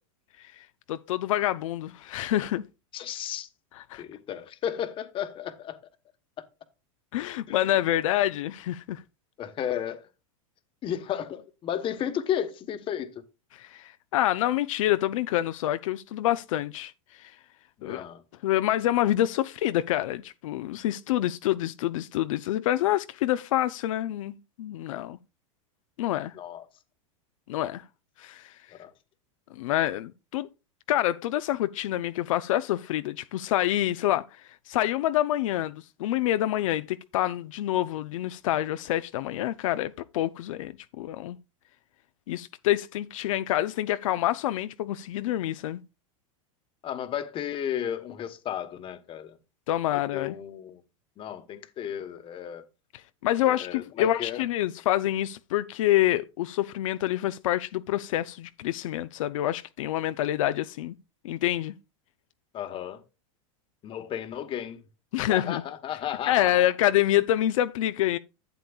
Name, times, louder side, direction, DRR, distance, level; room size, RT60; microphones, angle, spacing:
voice 1, 0.4-2.6 3.9-4.0 7.1-9.0 13.5-17.3 17.8-18.0 18.4-25.2 26.0-26.3 27.5-27.8 28.2-28.5 29.6-30.5 30.9-34.3 34.7-41.4 42.3-45.8 49.7-50.4 53.2-60.9 61.2-61.7 65.1-65.6 66.3-68.2, left 13 dB, 75° left, 0.5 m, -27 dB
voice 2, 2.9-3.5 4.0-5.8 7.5-7.8 9.4-10.0 10.8-13.2 17.8-18.2 26.3-26.6 28.8-28.9 46.8-49.4 49.9-50.8 51.2-52.6 53.4-54.4 62.5-63.0 63.8-64.8 65.3-66.6, left 10 dB, 30° left, 1.1 m, -33 dB
11.5 x 8.3 x 2.3 m
supercardioid pair, 130°, 17 cm